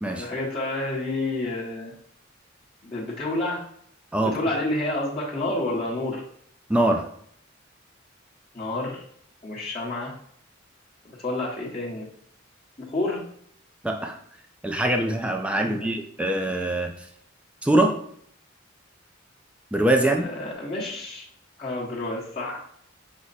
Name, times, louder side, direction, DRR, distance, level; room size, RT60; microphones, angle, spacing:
voice 1, 0.1-1.9 2.8-3.6 4.2-6.2 8.5-9.0 9.4-10.1 11.2-12.1 12.9-13.2 15.6-15.9 20.2-21.2 21.6-22.6, left 2 dB, 30° left, -9 dB, 1.0 m, -29 dB
voice 2, 6.7-7.0 13.8-14.2 14.6-16.9 17.6-18.0 19.7-20.3, right 1 dB, 5° right, 3 dB, 0.4 m, -23 dB
6.1 x 2.1 x 4.0 m, 0.65 s
head